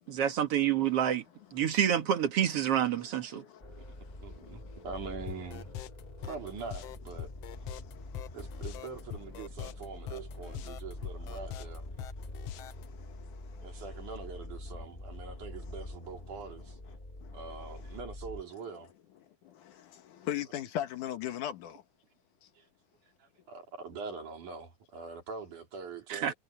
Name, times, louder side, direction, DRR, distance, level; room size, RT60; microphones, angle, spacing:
voice 1, 0.1-1.2 1.5-3.4 26.1-26.3, right 9 dB, 55° right, 2.3 m, -28 dB
voice 2, 3.3-4.8 6.2-6.3 7.7-8.4 12.2-13.8 15.6-15.7 17.2-17.9 19.4-21.8, left 11 dB, 85° left, 3.0 m, -41 dB
sound 1, 3.6-18.4, left 1 dB, 15° left, 2.5 m, -45 dB
voice 3, 4.1-5.7 6.2-7.3 8.3-11.9 13.6-16.8 17.3-18.9 22.6-22.7 23.2-26.3, right 4 dB, 90° right, 5.3 m, -43 dB
sound 2, 5.3-12.8, left 10 dB, 65° left, 1.8 m, -43 dB
omnidirectional pair, 3.4 m